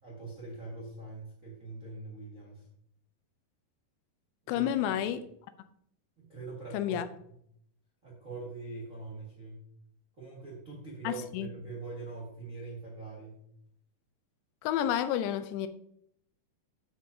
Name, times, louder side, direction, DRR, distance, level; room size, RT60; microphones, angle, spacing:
voice 1, 0.0-2.7 4.4-4.7 5.0-5.1 6.3-7.4 8.0-9.7 10.2-13.4, right 3 dB, 55° right, 0.8 m, -43 dB
voice 2, 4.5-5.2 6.7-7.0 11.0-11.5 14.6-15.7, left 11 dB, 85° left, 2.8 m, -30 dB
9.7 x 6.9 x 2.7 m
omnidirectional pair, 4.8 m